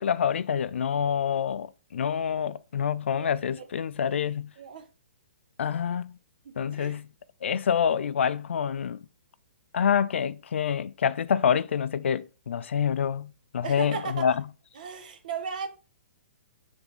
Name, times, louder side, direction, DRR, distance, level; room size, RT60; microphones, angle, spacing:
voice 1, 0.0-4.5 5.6-6.1 6.6-7.1 7.4-9.0 9.7-14.4, left 7 dB, 90° left, 0.4 m, -27 dB
voice 2, 4.6-4.9 6.4-7.0 13.6-14.3 14.7-15.7, right 6 dB, 40° right, 0.8 m, -36 dB
7.1 x 3.5 x 3.8 m
hypercardioid pair, 180°, 6 cm